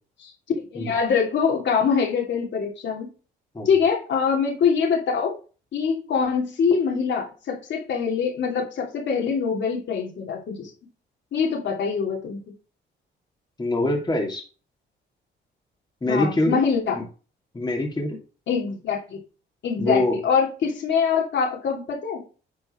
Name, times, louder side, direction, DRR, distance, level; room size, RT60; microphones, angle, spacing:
voice 1, 0.7-3.1 3.6-5.3 5.7-10.7 11.3-12.4 16.0-17.0 18.5-19.2 19.6-22.2, left 6 dB, 65° left, 0 dB, 2.8 m, -24 dB
voice 2, 13.6-14.4 16.0-16.6 16.9-17.0 17.5-18.2 19.8-20.2, left 1 dB, 20° left, 0 dB, 2.5 m, -24 dB
9.8 x 4.5 x 4.3 m, 0.35 s
cardioid pair, 90°, 20 cm